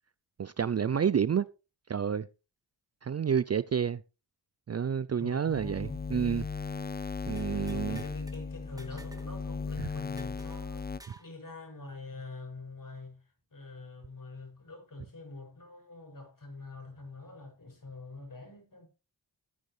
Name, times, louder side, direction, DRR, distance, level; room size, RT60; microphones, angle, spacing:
voice 1, 0.4-1.5 1.9-2.3 3.0-4.0 4.7-6.5 7.3-8.0 9.8-9.9, right 7 dB, 35° right, 0.5 m, -29 dB
voice 2, 5.2-6.0 7.5-10.9 11.2-13.2 13.5-18.9, left 3 dB, 45° left, 6.9 m, -45 dB
sound 1, 5.5-11.0, left 4 dB, 20° left, 0.6 m, -37 dB
sound 2, 7.4-8.4 8.8-9.3 9.6-9.7 10.2-11.3, equal, 10° right, 2.7 m, -53 dB
13.5 x 9.3 x 3.3 m
cardioid pair, 60°, 45 cm